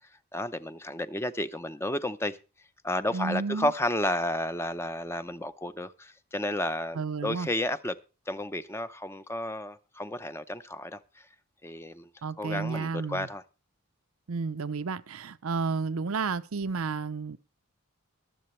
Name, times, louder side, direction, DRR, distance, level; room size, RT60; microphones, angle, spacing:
voice 1, 0.3-2.4 2.8-7.9 8.3-11.3 11.6-12.1 12.4-13.4, left 1 dB, 10° left, 0.6 m, -32 dB
voice 2, 3.1-3.7 6.9-7.5 12.2-13.3 14.3-17.4, right 4 dB, 80° right, 0.7 m, -31 dB
23.0 x 7.8 x 3.2 m
head